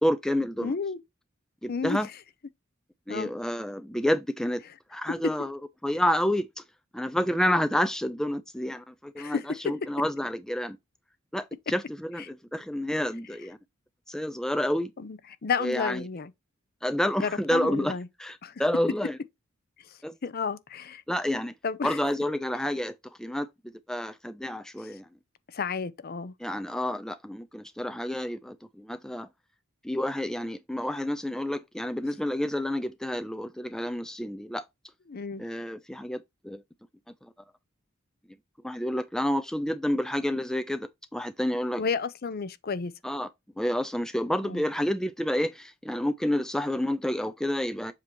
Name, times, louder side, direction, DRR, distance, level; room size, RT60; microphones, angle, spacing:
voice 1, 0.0-0.7 1.6-2.1 3.1-4.6 4.9-6.6 6.9-10.8 11.3-13.6 14.1-14.9 15.6-16.0 16.8-19.2 20.0-20.1 21.1-21.5 21.8-22.9 23.2-25.1 26.4-29.3 29.8-34.6 35.4-36.6 37.2-37.3 38.6-41.8 43.0-43.3 43.6-47.9, left 1 dB, 5° left, 0.3 m, -29 dB
voice 2, 0.6-1.0 1.7-2.0 3.1-3.3 9.2-9.4 15.0-16.3 17.2-18.1 18.4-18.5 20.2-21.0 21.6-22.0 25.5-26.3 35.1-35.4 41.8-42.9 44.4-44.6, left 5 dB, 50° left, 0.5 m, -31 dB
7.4 x 2.8 x 4.5 m
head